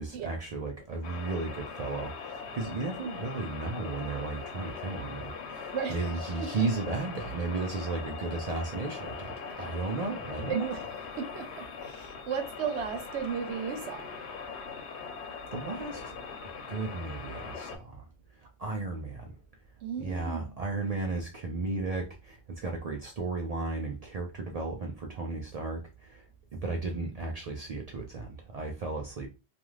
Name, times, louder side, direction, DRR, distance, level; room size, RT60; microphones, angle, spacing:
voice 1, 0.0-10.8 15.5-16.2 16.7-19.4 20.0-29.3, right 3 dB, 55° right, 0.4 m, -34 dB
sound 1, 1.0-17.8, left 5 dB, 85° left, 1.0 m, -41 dB
voice 2, 5.7-6.1 6.4-6.5 10.5-10.8 11.2-14.1 19.8-20.5, right 7 dB, 85° right, 0.9 m, -35 dB
2.4 x 2.3 x 3.1 m
omnidirectional pair, 1.1 m